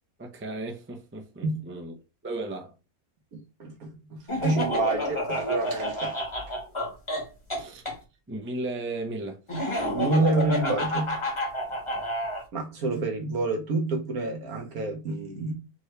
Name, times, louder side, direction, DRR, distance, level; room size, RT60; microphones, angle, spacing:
voice 1, 0.2-1.9 2.2-2.7 7.6-7.9 8.3-9.4 11.9-12.0, right 2 dB, 15° right, 0.5 m, -35 dB
voice 2, 3.3-6.2 9.9-11.2 12.5-15.5, right 2 dB, 80° right, 1.7 m, -28 dB
Laughter, 4.3-8.0 9.5-12.4, equal, 20° left, 1.2 m, -29 dB
4.4 x 3.0 x 3.2 m
omnidirectional pair, 1.5 m